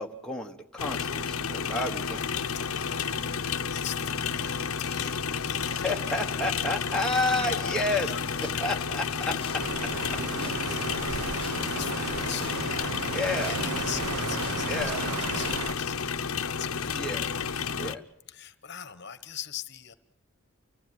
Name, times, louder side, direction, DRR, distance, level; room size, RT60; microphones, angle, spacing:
voice 1, 0.0-2.4 5.8-8.1 8.6-9.4 9.8-9.9 13.1-13.6 14.7-15.0 16.9-17.3 17.8-18.0, left 2 dB, 5° left, 0 dB, 1.2 m, -30 dB
sound 1, 0.8-17.9, left 6 dB, 75° left, 0.8 m, -31 dB
voice 2, 2.4-3.3 3.7-5.9 7.1-8.3 9.1-9.6 9.9-17.2 18.3-19.9, left 9 dB, 50° left, 13 dB, 1.1 m, -42 dB
sound 2, 7.9-9.0 9.4-9.6 9.9-13.0 13.4-13.6 13.9-15.9, left 4 dB, 25° left, 1.3 m, -45 dB
sound 3, 9.6-15.7, right 4 dB, 90° right, 0.9 m, -34 dB
29.5 x 15.0 x 9.4 m, 0.84 s
head